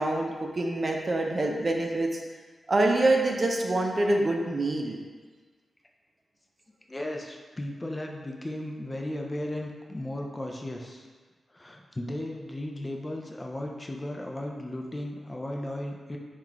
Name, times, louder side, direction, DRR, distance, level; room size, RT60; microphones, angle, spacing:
voice 1, 0.0-2.2 2.7-5.0, right 2 dB, 45° right, 1 dB, 0.5 m, -25 dB
voice 2, 6.9-11.1 11.5-16.2, left 1 dB, 25° left, 1 dB, 0.5 m, -35 dB
3.8 x 2.4 x 4.5 m, 1.4 s
cardioid pair, 50°, 0 cm